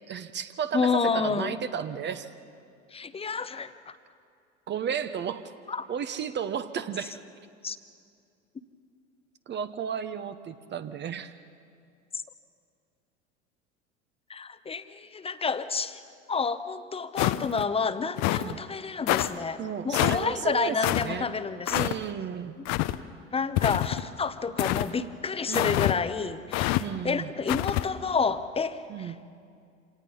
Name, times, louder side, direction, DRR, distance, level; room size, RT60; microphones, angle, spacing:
voice 1, 0.1-2.3 4.7-5.5 5.9-7.2 9.5-11.4 18.4-18.7 19.6-21.3 21.7-22.6 25.5-25.8 26.8-27.3 28.9-29.2, right 8 dB, 30° right, 10 dB, 1.0 m, -33 dB
voice 2, 0.7-1.6 2.9-3.7 5.7-5.9 7.6-7.8 14.3-16.0 16.3-21.9 23.3-29.1, left 5 dB, 15° left, 12 dB, 1.0 m, -29 dB
sound 1, 17.2-17.6 18.2-18.5 19.1-19.3 19.9-20.2 20.8-21.0 21.7-21.9 22.6-23.0 23.6-24.0 24.6-24.9 25.5-25.9 26.5-26.8 27.5-27.8, left 17 dB, 45° left, 0.9 m, -26 dB
26.5 x 18.5 x 5.6 m, 2.4 s
hypercardioid pair, 80°, 37 cm